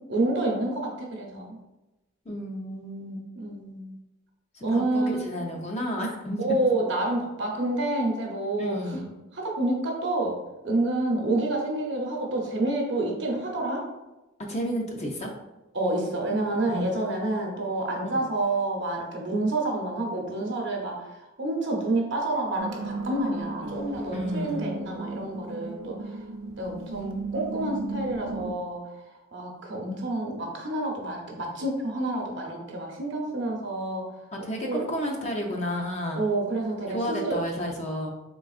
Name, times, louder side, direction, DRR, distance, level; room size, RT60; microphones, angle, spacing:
voice 1, 0.0-1.6 3.4-4.0 4.6-5.3 6.4-8.8 9.4-10.4 10.6-13.9 15.7-26.2 26.6-28.8 29.3-34.1 34.6-34.8 36.1-37.4, right 2 dB, 55° right, 0 dB, 0.7 m, -28 dB
voice 2, 2.3-3.2 4.5-6.4 8.6-9.0 14.4-15.3 16.7-17.5 18.1-18.3 24.1-24.7 34.4-36.2 36.9-38.1, equal, 30° left, 0 dB, 0.5 m, -32 dB
sound 1, 22.6-28.5, right 3 dB, 80° right, 0.4 m, -36 dB
3.8 x 3.4 x 2.4 m, 1.0 s
head